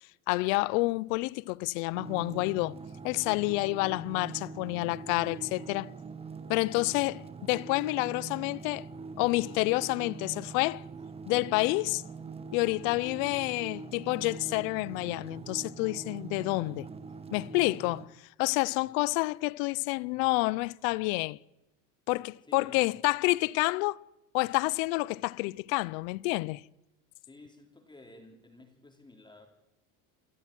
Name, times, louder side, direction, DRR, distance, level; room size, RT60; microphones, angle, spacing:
voice 1, 0.3-2.8 3.0-5.9 6.5-8.9 9.2-10.8 11.3-12.0 12.5-16.9 17.3-18.1 18.4-21.4 22.1-24.0 24.3-26.6, left 23 dB, 65° left, 0.8 m, -29 dB
sound 1, 1.9-18.1, right 4 dB, 15° right, 1.2 m, -43 dB
voice 2, 16.5-16.9 18.8-19.1 22.5-23.0 27.2-29.5, left 2 dB, 10° left, 3.5 m, -53 dB
28.0 x 12.0 x 10.0 m
supercardioid pair, 140°, 44 cm